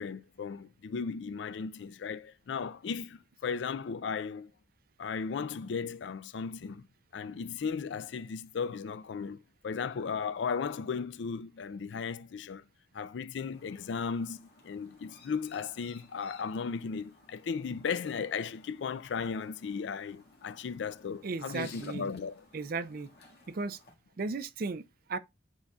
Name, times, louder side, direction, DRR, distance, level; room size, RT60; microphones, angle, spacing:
voice 1, 0.0-4.5 5.0-6.9 7.1-9.4 9.6-12.6 12.9-22.4, left 5 dB, 80° left, 0.4 m, -36 dB
Chirp tweet, 13.5-23.9, left 4 dB, 60° left, 1.6 m, -58 dB
voice 2, 21.2-22.1 22.5-23.1 23.5-23.8 24.2-25.2, right 4 dB, 55° right, 0.4 m, -35 dB
9.9 x 4.1 x 2.3 m
head